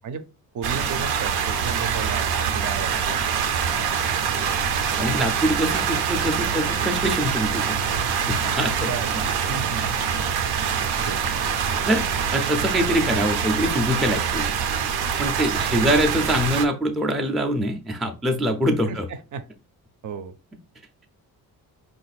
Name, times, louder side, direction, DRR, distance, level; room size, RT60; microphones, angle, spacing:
voice 1, 0.5-3.2 8.8-10.0 10.8-11.2 15.7-16.0 18.9-19.4 20.0-20.4, right 6 dB, 55° right, 11 dB, 0.6 m, -34 dB
sound 1, 0.6-16.7, right 7 dB, 90° right, 0.7 m, -25 dB
voice 2, 4.9-7.8 8.3-8.9 11.9-12.0 12.3-14.4 15.2-19.1, equal, ahead, 3 dB, 0.4 m, -24 dB
5.3 x 2.5 x 4.0 m, 0.30 s
wide cardioid pair, 175°, 37 cm